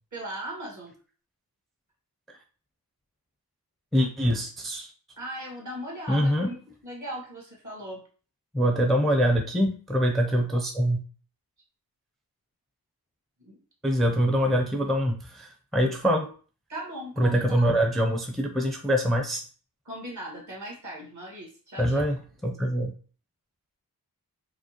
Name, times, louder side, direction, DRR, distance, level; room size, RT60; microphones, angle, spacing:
voice 1, 0.1-0.9 5.2-8.0 13.4-13.6 16.7-17.6 19.9-22.0, right 1 dB, 50° right, -2 dB, 1.7 m, -38 dB
voice 2, 3.9-4.9 6.1-6.5 8.5-11.0 13.8-16.3 17.2-19.4 21.8-22.9, equal, ahead, 2 dB, 0.5 m, -24 dB
4.9 x 2.1 x 2.9 m, 0.40 s
wide cardioid pair, 75°, 37 cm